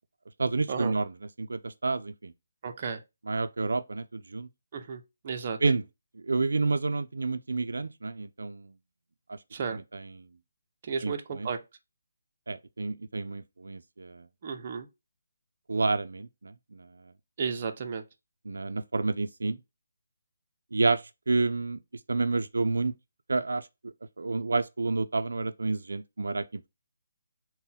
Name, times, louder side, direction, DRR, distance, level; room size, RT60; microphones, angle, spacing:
voice 1, 0.4-1.1 1.4-2.3 3.3-4.5 5.6-5.8 6.3-8.7 9.3-9.4 9.7-10.1 11.0-11.5 12.5-14.3 15.7-16.9 18.5-19.6 20.7-21.8 22.1-22.9 23.3-26.7, right 3 dB, 90° right, 0.3 m, -29 dB
voice 2, 2.6-3.0 4.7-5.6 9.5-9.8 10.8-11.6 14.4-14.9 17.4-18.0, right 6 dB, 30° right, 0.5 m, -33 dB
3.7 x 2.1 x 4.0 m
hypercardioid pair, 175°, 0 cm